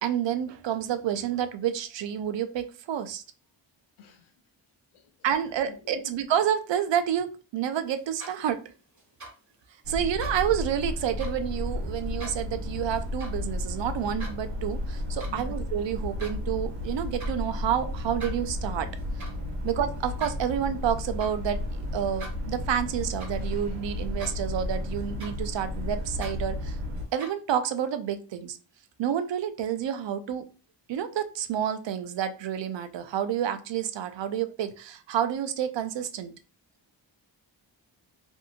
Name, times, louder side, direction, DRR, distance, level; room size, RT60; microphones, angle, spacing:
voice 1, 0.0-3.2 5.2-8.6 9.9-18.9 19.6-21.6 21.9-26.8 27.1-28.6 29.0-30.4 30.9-36.3, right 9 dB, 65° right, 0.5 m, -29 dB
voice 2, 4.0-4.3 4.9-5.0 5.7-6.1 15.2-15.6, left 6 dB, 85° left, 0.7 m, -47 dB
sound 1, 8.0-8.6 9.0-9.3 10.0-10.4 11.0-11.4 12.0-12.4 13.0-13.4 13.7-14.4 14.9-15.4 15.7-16.4 17.0-17.4 17.9-23.7 24.0-24.6 25.0-27.3, right 2 dB, 35° right, 1.4 m, -45 dB
sound 2, 9.8-27.0, left 1 dB, 80° right, 0.9 m, -33 dB
2.7 x 2.5 x 2.4 m
cardioid pair, 65°, 47 cm